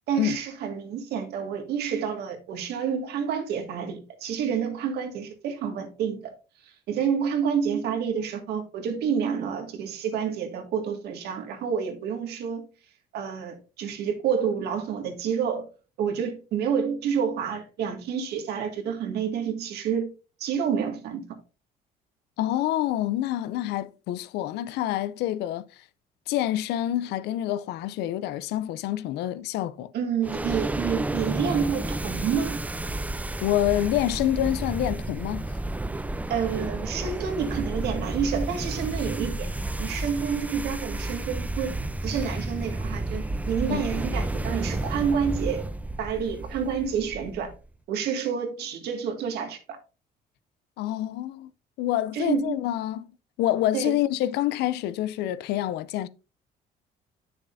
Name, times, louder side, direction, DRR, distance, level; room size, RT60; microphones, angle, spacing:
voice 1, 0.1-6.3 6.6-12.6 13.1-15.7 16.0-20.1 20.4-21.3 29.9-32.6 36.3-39.5 39.8-41.7 42.0-45.7 46.0-47.5 47.9-49.6 52.1-52.6 53.7-54.0, right 7 dB, 75° right, 1.9 m, -29 dB
voice 2, 22.4-25.7 26.3-29.9 33.4-35.6 43.7-43.9 50.8-51.5 51.8-53.1 53.4-56.1, left 13 dB, 80° left, 0.5 m, -27 dB
sound 1, 30.2-47.6, right 2 dB, 10° right, 0.5 m, -31 dB
9.2 x 6.6 x 2.6 m
cardioid pair, 110°, 17 cm